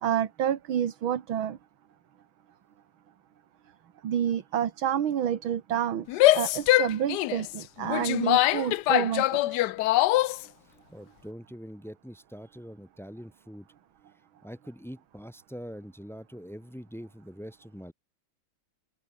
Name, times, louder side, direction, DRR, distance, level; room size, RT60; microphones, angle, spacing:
voice 1, 0.0-1.6 4.0-9.7, right 9 dB, 75° right, 2.2 m, -29 dB
Female speech woman speaking / Yell, 6.1-10.4, left 16 dB, 75° left, 1.0 m, -23 dB
voice 2, 10.6-13.7 14.4-17.9, equal, ahead, 7.5 m, -44 dB
open air
omnidirectional pair, 2.2 m